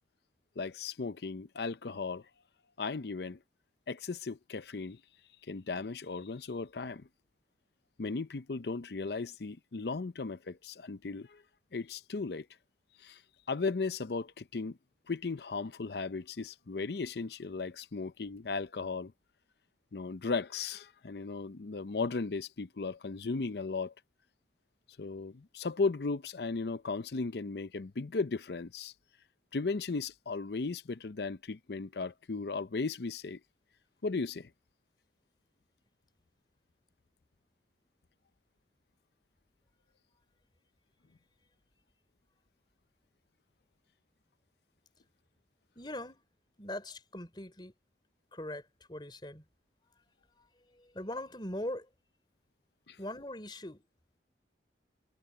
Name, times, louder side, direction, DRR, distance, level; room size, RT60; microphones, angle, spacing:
voice 1, 0.6-2.3 2.8-3.4 3.9-5.0 5.5-7.1 8.0-11.4 11.7-12.5 13.0-13.2 13.5-14.8 15.1-19.1 19.9-23.9 25.0-28.9 29.5-33.4 34.0-34.5 52.9-53.0, left 4 dB, 70° left, 0.6 m, -36 dB
voice 2, 45.8-46.2 46.6-47.7 48.3-48.6 48.9-49.4 50.7-51.9 53.0-53.8, left 1 dB, 25° left, 3.7 m, -40 dB
head